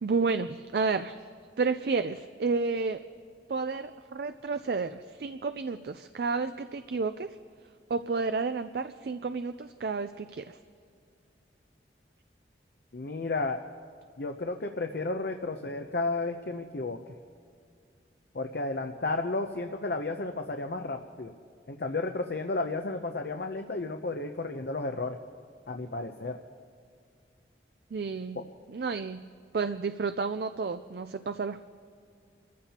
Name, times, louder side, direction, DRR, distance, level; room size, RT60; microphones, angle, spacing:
voice 1, 0.0-1.2 1.6-3.0 3.5-7.4 7.9-10.6 27.9-28.4 28.7-29.2 29.5-31.6, right 4 dB, 60° right, 10 dB, 0.4 m, -31 dB
voice 2, 12.9-13.6 14.2-17.0 18.3-21.3 21.7-25.2 25.7-26.4 28.3-28.4, left 3 dB, 60° left, 4 dB, 0.7 m, -32 dB
29.0 x 14.5 x 2.9 m, 2.3 s
head